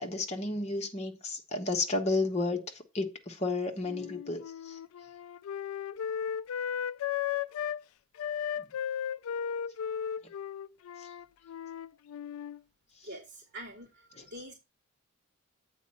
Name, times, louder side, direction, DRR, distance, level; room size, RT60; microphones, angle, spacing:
voice 1, 0.0-4.8 8.6-8.7 11.0-11.1, left 2 dB, 30° left, 1.2 m, -32 dB
Wind instrument woodwind instrument, 3.8-7.8 8.2-12.6, left 8 dB, 70° left, 0.3 m, -35 dB
voice 2, 13.0-14.5, right 1 dB, 45° right, 2.9 m, -45 dB
8.1 x 4.3 x 5.8 m
head